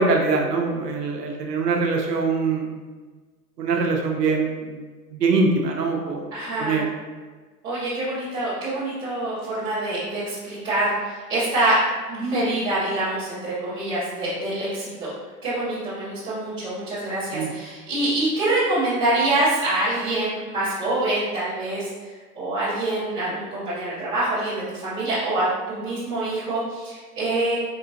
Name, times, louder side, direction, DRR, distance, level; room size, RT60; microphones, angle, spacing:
voice 1, 0.0-2.7 3.6-4.8 5.1-6.3 6.6-6.9 17.3-17.5, right 4 dB, 85° right, 1 dB, 0.9 m, -23 dB
voice 2, 6.3-6.8 7.6-11.8 12.1-15.1 15.4-21.9 22.3-27.6, right 2 dB, 10° right, -16 dB, 0.4 m, -25 dB
4.7 x 2.8 x 2.5 m, 1.4 s
hypercardioid pair, 135°, 48 cm